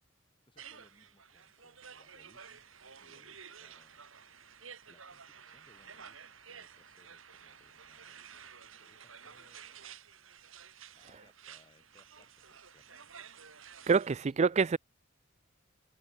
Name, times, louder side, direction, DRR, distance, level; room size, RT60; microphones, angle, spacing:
voice 1, 0.5-2.7 3.0-4.2 4.9-8.2 8.7-9.8 10.9-13.1 14.1-14.7, left 1 dB, 25° left, 6.7 m, -67 dB
sound 1, 0.6-14.3, right 7 dB, 75° right, 5.2 m, -52 dB
voice 2, 13.9-14.8, right 5 dB, 35° right, 0.4 m, -26 dB
head